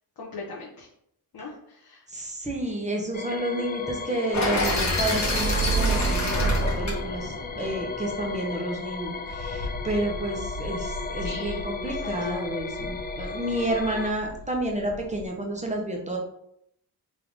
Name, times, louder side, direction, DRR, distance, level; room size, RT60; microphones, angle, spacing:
voice 1, 0.2-0.9 1.3-2.0 11.2-12.1, left 3 dB, 55° left, -5 dB, 1.2 m, -40 dB
voice 2, 2.1-16.2, right 1 dB, 15° right, 1 dB, 1.1 m, -30 dB
sound 1, 3.1-14.1, left 4 dB, 25° left, 0.4 m, -35 dB
sound 2, 4.3-8.4, right 1 dB, 40° left, 1.4 m, -26 dB
sound 3, 7.7-15.3, left 1 dB, 85° right, 1.3 m, -40 dB
3.7 x 3.5 x 3.6 m, 0.75 s
cardioid pair, 75°, 42 cm